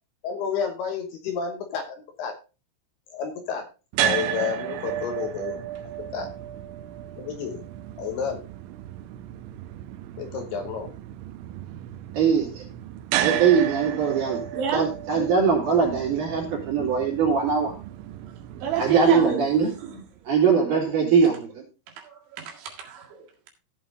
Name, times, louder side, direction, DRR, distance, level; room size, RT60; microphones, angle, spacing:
voice 1, 0.2-2.4 3.1-3.7 4.0-5.6 6.1-6.3 7.2-7.6 8.0-8.4 10.2-10.9, left 7 dB, 70° left, 5 dB, 2.8 m, -30 dB
sound 1, 3.9-20.1, right 11 dB, 90° right, 3.3 m, -33 dB
voice 2, 12.1-12.6 13.2-14.4 14.7-17.7 18.8-19.7 20.2-21.6, right 6 dB, 45° right, -1 dB, 4.5 m, -21 dB
voice 3, 14.5-14.9 18.5-19.4 19.8-20.0 22.0-23.5, right 9 dB, 75° right, 1 dB, 4.2 m, -29 dB
15.5 x 5.7 x 3.7 m, 0.30 s
omnidirectional pair, 5.5 m